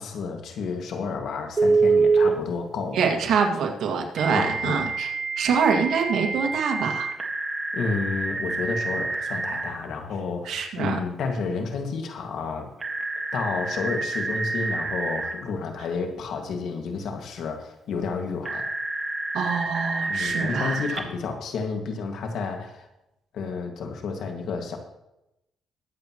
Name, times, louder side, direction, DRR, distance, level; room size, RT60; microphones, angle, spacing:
voice 1, 0.0-3.1 4.3-4.9 7.7-12.7 13.3-18.7 20.1-22.9 23.3-24.8, left 4 dB, 70° left, 4 dB, 1.9 m, -31 dB
Telephone, 1.6-2.3 4.2-9.7 12.8-15.3 18.5-21.0, right 3 dB, 30° right, 1.7 m, -26 dB
voice 2, 2.9-5.1 5.4-7.1 10.5-11.0 19.3-20.8, right 6 dB, 75° right, 3 dB, 2.0 m, -25 dB
22.0 x 7.9 x 3.1 m, 0.88 s
cardioid pair, 90°, 0 cm